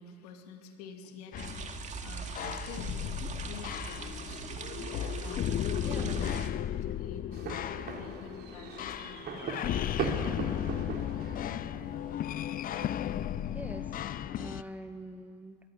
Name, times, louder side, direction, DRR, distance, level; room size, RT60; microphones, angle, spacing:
voice 1, 0.0-1.7 2.0-4.5 5.1-6.3 6.6-9.1 9.6-10.2, left 6 dB, 80° left, 4 dB, 2.7 m, -49 dB
sound 1, 1.3-14.6, left 11 dB, 45° left, 0.7 m, -35 dB
sound 2, 1.4-6.5, right 6 dB, 35° right, 2.4 m, -40 dB
voice 2, 5.8-6.3 13.5-13.9 14.3-15.6, right 1 dB, 10° right, 8 dB, 1.8 m, -44 dB
sound 3, 7.3-13.2, right 6 dB, 55° right, 3.2 m, -40 dB
22.5 x 13.5 x 9.5 m, 2.3 s
hypercardioid pair, 70°, 20 cm